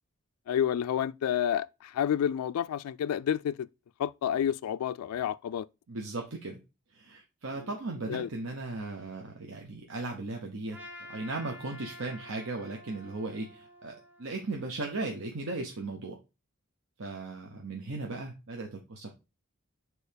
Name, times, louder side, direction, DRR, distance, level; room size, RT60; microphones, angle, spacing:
voice 1, 0.5-3.7 4.0-5.7 7.6-7.7 8.1-8.3, left 9 dB, 85° left, 0.3 m, -29 dB
voice 2, 5.9-6.6 6.9-10.8 11.1-16.2 17.0-19.2, right 2 dB, 65° right, 0.9 m, -37 dB
Trumpet, 10.7-15.0, left 1 dB, 5° right, 1.0 m, -49 dB
4.7 x 4.2 x 5.0 m
head